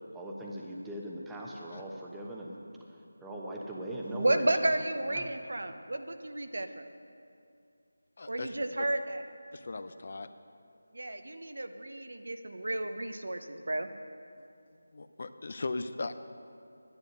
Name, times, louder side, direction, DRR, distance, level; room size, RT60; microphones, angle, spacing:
voice 1, 0.1-2.6 3.2-4.7 5.1-5.3, right 1 dB, 5° right, -3 dB, 1.0 m, -40 dB
voice 2, 4.1-6.8 8.3-9.2 10.9-13.9, right 1 dB, 70° right, 8 dB, 0.9 m, -32 dB
voice 3, 8.2-8.8 9.5-10.3 14.4-14.5 14.9-16.1, left 3 dB, 50° left, 10 dB, 0.6 m, -38 dB
11.0 x 10.5 x 6.5 m, 2.5 s
figure-of-eight pair, 165°, 0 cm